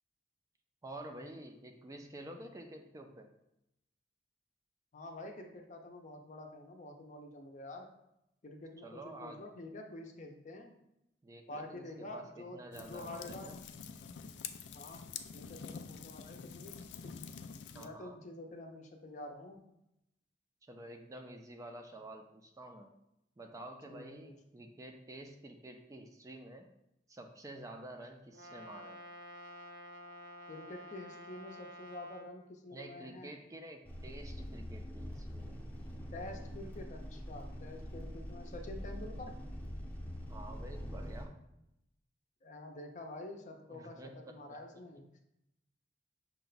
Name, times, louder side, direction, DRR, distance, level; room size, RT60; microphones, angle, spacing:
voice 1, 0.8-3.3 8.8-9.5 11.2-13.6 17.7-18.2 20.7-22.9 23.4-26.7 27.1-29.0 32.7-35.6 40.3-41.3 43.7-44.4, right 1 dB, 20° right, 4 dB, 0.4 m, -49 dB
voice 2, 4.9-7.9 8.4-10.7 11.5-13.5 14.7-15.0 15.3-16.8 17.0-17.1 17.7-19.6 23.9-24.2 30.5-33.3 36.1-39.3 42.4-45.2, left 2 dB, 45° left, 3 dB, 0.6 m, -48 dB
sound 1, 12.7-17.9, left 6 dB, 85° left, 0.3 m, -47 dB
Brass instrument, 28.3-32.3, equal, 75° right, 0.8 m, -50 dB
sound 2, 33.8-41.3, equal, 10° left, 0.7 m, -44 dB
5.7 x 2.2 x 3.9 m, 0.84 s
head